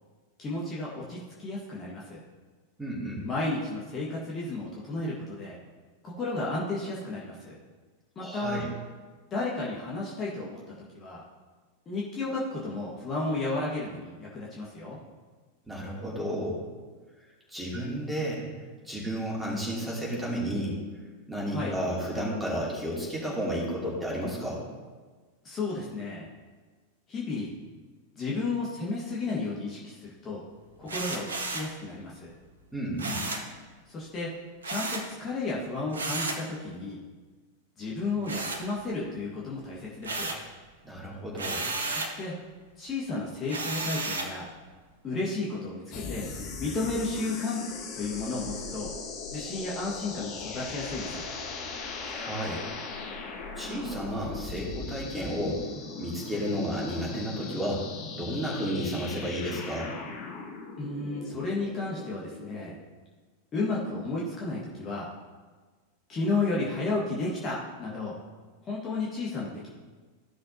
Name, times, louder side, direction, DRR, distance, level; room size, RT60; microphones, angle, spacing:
voice 1, 0.4-2.2 3.2-5.6 6.0-7.6 8.1-8.6 9.3-11.2 11.8-15.0 21.5-21.8 25.4-26.3 27.1-27.5 28.1-30.4 30.8-31.3 31.5-32.3 33.9-34.3 34.6-37.0 37.8-40.3 41.9-42.4 42.8-44.5 45.0-46.3 46.6-47.6 47.9-48.9 49.3-51.3 60.8-62.7 63.5-65.1 66.1-68.2 68.6-69.7, left 3 dB, 25° left, -5 dB, 1.7 m, -33 dB
voice 2, 2.8-3.2 8.2-8.7 15.7-16.6 17.5-18.5 18.8-20.8 21.3-24.6 32.7-33.2 40.8-41.7 52.0-52.6 53.5-55.7 56.0-57.9 58.2-60.0, equal, 5° right, -5 dB, 2.7 m, -32 dB
sound 1, 30.9-31.8 33.0-33.5 34.6-35.1 35.9-36.5 38.2-39.1 39.5-40.5 41.4-42.2 43.5-44.4, right 2 dB, 70° right, 1.0 m, -33 dB
sound 2, 45.9-62.7, left 4 dB, 45° left, 1.4 m, -39 dB
14.5 x 6.4 x 2.8 m, 1.4 s
figure-of-eight pair, 90°, 0 cm